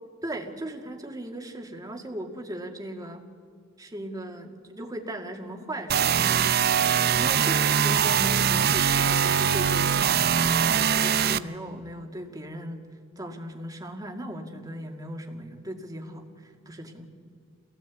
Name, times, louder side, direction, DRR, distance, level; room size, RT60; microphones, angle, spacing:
voice 1, 0.2-3.3 3.8-6.6 7.2-10.6 10.9-12.9 13.2-17.1, right 1 dB, 20° right, 3 dB, 2.1 m, -38 dB
sound 1, 5.9-11.4, right 8 dB, 50° right, 0.6 m, -22 dB
26.0 x 17.5 x 8.3 m, 2.1 s
head